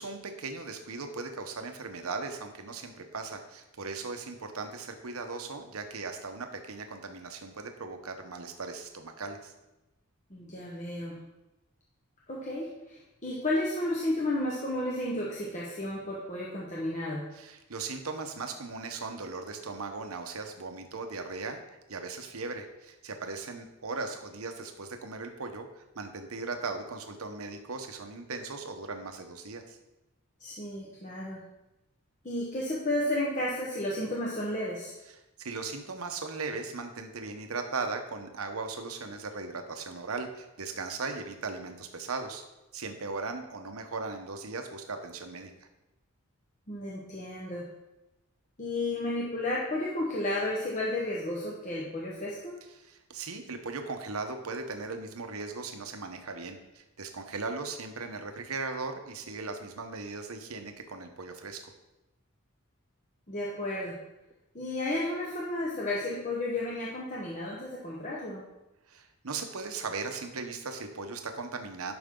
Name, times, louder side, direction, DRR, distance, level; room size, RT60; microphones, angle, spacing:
voice 1, 0.0-9.5 17.3-21.6 21.9-29.8 35.4-42.4 42.7-45.5 52.8-61.6 68.9-71.9, right 4 dB, 80° right, 6 dB, 1.0 m, -38 dB
voice 2, 10.3-11.2 12.3-17.3 30.4-31.4 32.2-34.9 46.7-47.7 48.6-52.6 63.3-63.9 64.5-68.4, left 1 dB, 35° left, -4 dB, 1.1 m, -32 dB
10.5 x 6.1 x 3.8 m, 0.99 s
head